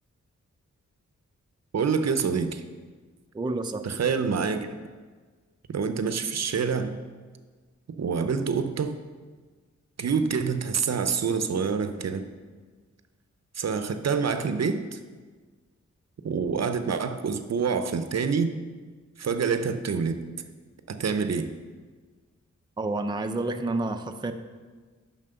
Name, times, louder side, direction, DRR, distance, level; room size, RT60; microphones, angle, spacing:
voice 1, 1.7-2.6 3.8-4.7 5.7-7.0 8.0-9.0 10.0-12.2 13.5-15.0 16.2-18.5 19.2-20.2 20.9-21.5, right 5 dB, 60° right, 9 dB, 0.6 m, -26 dB
voice 2, 3.3-3.9 22.8-24.3, right 2 dB, 15° right, 6 dB, 0.4 m, -29 dB
7.3 x 5.8 x 6.7 m, 1.4 s
wide cardioid pair, 110°, 30 cm